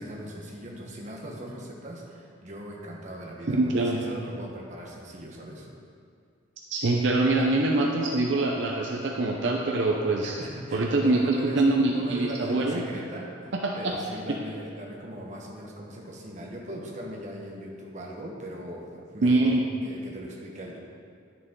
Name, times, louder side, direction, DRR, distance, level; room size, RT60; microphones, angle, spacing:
voice 1, 0.0-5.7 10.2-20.8, equal, 35° right, -1 dB, 1.2 m, -39 dB
voice 2, 3.5-4.0 6.7-10.3 10.7-12.8 13.6-13.9 19.2-19.6, right 2 dB, 65° right, -1 dB, 0.7 m, -24 dB
10.5 x 6.8 x 3.7 m, 2.2 s
head